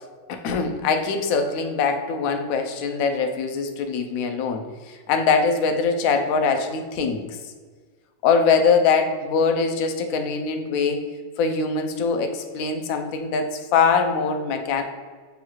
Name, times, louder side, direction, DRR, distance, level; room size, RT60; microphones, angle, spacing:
voice 1, 0.3-7.4 8.2-11.0 11.4-14.8, left 5 dB, 75° left, 5 dB, 0.8 m, -22 dB
7.0 x 2.3 x 3.0 m, 1.5 s
omnidirectional pair, 1.9 m